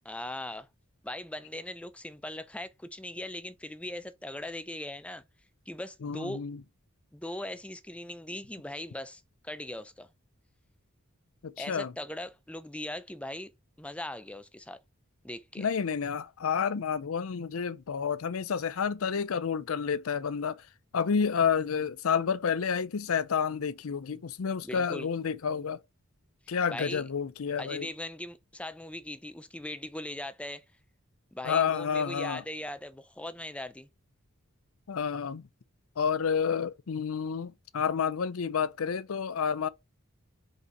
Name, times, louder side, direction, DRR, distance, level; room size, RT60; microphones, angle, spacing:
voice 1, 0.1-0.7 1.0-5.2 5.7-6.4 7.1-10.1 11.6-13.5 13.8-14.8 15.2-15.7 24.6-25.1 26.7-27.0 27.6-30.6 31.3-33.9, left 1 dB, 5° left, 0.5 m, -39 dB
voice 2, 6.0-6.6 11.4-11.9 15.6-20.7 20.9-25.8 26.5-27.9 31.4-32.4 34.9-35.5 36.0-39.7, left 6 dB, 70° left, 0.5 m, -30 dB
5.4 x 4.1 x 4.6 m
head